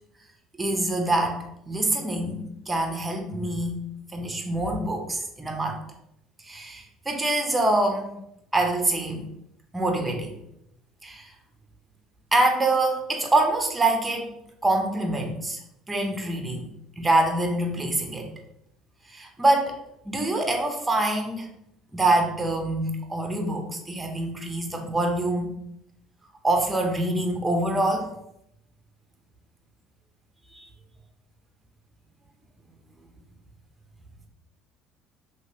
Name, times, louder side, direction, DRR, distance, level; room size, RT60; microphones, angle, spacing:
voice 1, 0.6-3.8 4.1-5.8 6.4-8.1 8.5-9.3 9.7-10.4 11.0-11.3 12.3-14.3 14.6-15.6 15.9-16.7 17.0-18.3 19.1-19.8 20.0-21.5 21.9-25.5 26.4-28.1 30.5-30.6, right 2 dB, 15° right, 3 dB, 0.7 m, -25 dB
2.9 x 2.8 x 3.0 m, 0.80 s
supercardioid pair, 90°, 0 cm